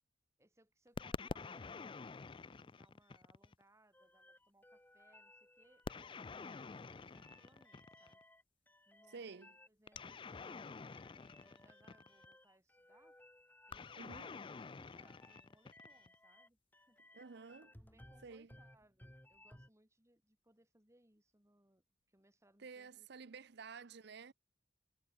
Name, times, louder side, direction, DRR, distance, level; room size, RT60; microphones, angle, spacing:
voice 1, 0.4-8.2 8.9-9.4 9.7-11.0 11.3-13.2 13.7-17.3 17.7-23.4, right 1 dB, 15° right, 3.9 m, -71 dB
sound 1, 1.0-3.6 5.8-8.2 9.9-12.3 13.7-16.1, left 4 dB, 25° left, 0.4 m, -48 dB
sound 2, 3.9-19.7, left 1 dB, 10° left, 2.9 m, -63 dB
voice 2, 9.1-9.6 14.0-14.3 17.1-17.8 18.2-18.5 22.6-24.3, right 5 dB, 60° right, 0.6 m, -51 dB
head